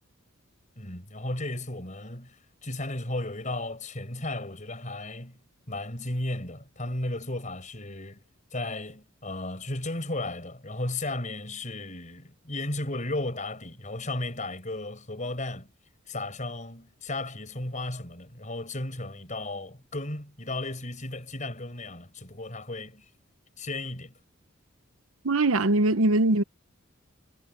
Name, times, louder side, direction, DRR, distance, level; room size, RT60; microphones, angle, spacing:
voice 1, 0.8-5.4 5.7-8.2 8.5-15.7 16.1-23.0 23.6-24.1, left 2 dB, 35° left, 5.3 m, -34 dB
voice 2, 25.2-26.4, right 2 dB, 75° right, 0.9 m, -21 dB
head